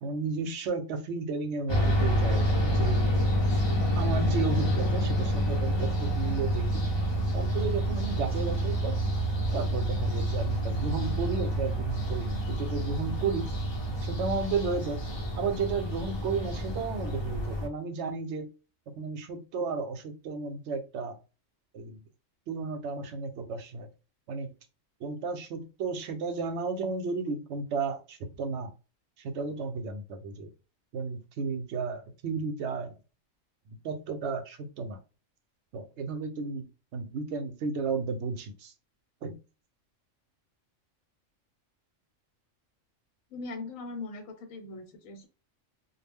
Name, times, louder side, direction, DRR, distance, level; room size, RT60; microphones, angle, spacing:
voice 1, 0.0-3.0 4.0-6.8 7.3-9.0 9.5-13.5 14.0-15.0 15.4-18.5 18.9-21.2 21.7-22.0 22.5-23.9 24.3-24.5 25.0-28.7 29.2-30.5 30.9-32.9 33.7-35.0 35.7-36.7 36.9-38.7 39.2-39.4, right 4 dB, 65° right, 6 dB, 0.8 m, -33 dB
sound 1, 1.7-17.7, equal, 40° left, 0.4 m, -28 dB
voice 2, 43.3-45.3, left 3 dB, 85° left, 6 dB, 1.1 m, -40 dB
2.3 x 2.0 x 3.4 m, 0.32 s
omnidirectional pair, 1.4 m